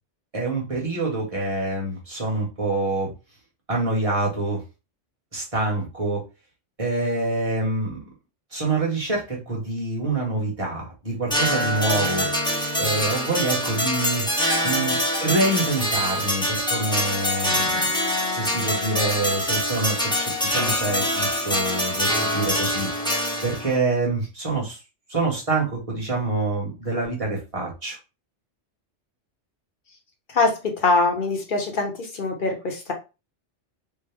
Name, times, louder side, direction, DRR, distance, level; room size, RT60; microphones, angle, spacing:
voice 1, 0.3-3.1 3.7-4.6 5.3-6.2 6.8-8.1 8.5-12.3 12.8-14.3 14.6-24.8 25.1-28.0, right 2 dB, 30° right, -2 dB, 1.1 m, -26 dB
sound 1, 11.3-23.8, equal, 5° left, 0.6 m, -24 dB
voice 2, 30.3-32.9, left 3 dB, 50° left, 3 dB, 0.8 m, -23 dB
3.3 x 2.0 x 3.4 m, 0.29 s
omnidirectional pair, 1.2 m